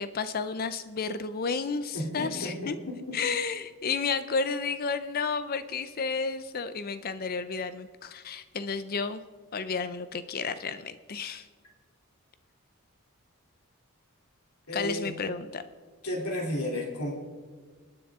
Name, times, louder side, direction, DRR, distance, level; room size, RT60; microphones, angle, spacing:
voice 1, 0.0-2.8 3.1-9.2 9.5-11.5 14.7-15.6, left 5 dB, 40° left, 12 dB, 0.5 m, -32 dB
voice 2, 1.9-3.1 14.7-15.1 16.0-17.1, left 1 dB, 85° left, 0 dB, 3.0 m, -33 dB
28.5 x 9.9 x 3.6 m, 1.5 s
head